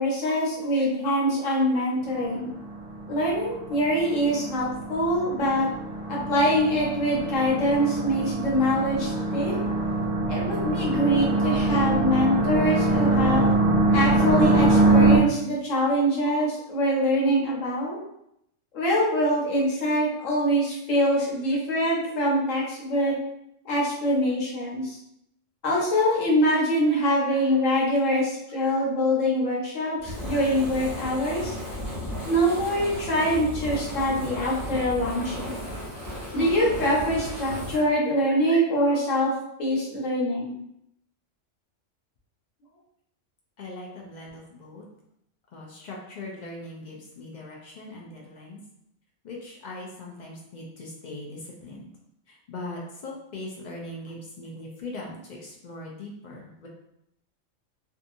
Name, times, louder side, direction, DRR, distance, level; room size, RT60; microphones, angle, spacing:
voice 1, 0.0-2.5 3.1-5.7 6.1-9.5 10.3-13.5 13.9-18.0 18.7-23.1 23.6-25.0 25.6-31.5 32.3-35.6 36.3-39.3 39.6-40.5, equal, 85° left, -4 dB, 1.2 m, -24 dB
sound 1, 2.0-15.2, right 2 dB, 65° right, 0.3 m, -24 dB
Fire, 30.0-37.8, left 1 dB, 35° left, 1.1 m, -35 dB
voice 2, 43.6-44.8 45.5-48.6 49.2-51.9 52.3-56.7, left 2 dB, 60° left, -2 dB, 0.4 m, -40 dB
2.7 x 2.4 x 2.5 m, 0.78 s
omnidirectional pair, 1.3 m